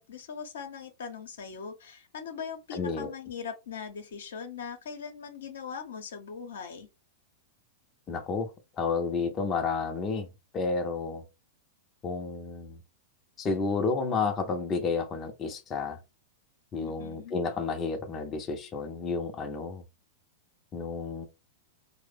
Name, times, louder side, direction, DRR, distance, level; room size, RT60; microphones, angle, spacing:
voice 1, 0.0-6.9 16.7-17.4, left 6 dB, 70° left, 0.8 m, -40 dB
voice 2, 2.7-3.1 8.1-8.5 8.8-10.3 10.5-11.2 12.0-12.8 13.4-16.0 16.7-19.8 20.7-21.3, left 4 dB, 30° left, 0.6 m, -31 dB
3.2 x 2.1 x 3.3 m
hypercardioid pair, 100°, 0 cm